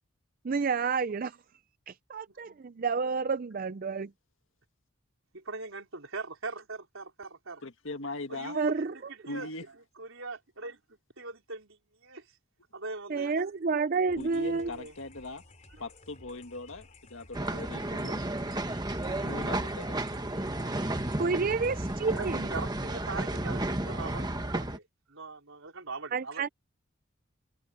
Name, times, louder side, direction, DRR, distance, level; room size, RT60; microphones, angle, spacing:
voice 1, 0.4-1.4 1.9-4.1 8.5-8.9 13.1-14.7 21.2-22.5 26.1-26.5, right 4 dB, 40° right, 0.4 m, -29 dB
voice 2, 5.3-7.6 8.3-9.5 10.0-12.3 12.7-13.4 14.5-14.9 17.9-18.0 20.4-20.7 22.1-24.8 25.1-26.5, right 3 dB, 70° right, 4.4 m, -41 dB
voice 3, 7.6-8.5 9.3-9.6 14.2-15.4 15.8-18.2 19.1-20.0, left 2 dB, 65° left, 1.8 m, -40 dB
sound 1, 14.1-22.4, left 2 dB, 35° left, 3.4 m, -55 dB
sound 2, 17.3-24.8, right 1 dB, 20° right, 1.2 m, -32 dB
head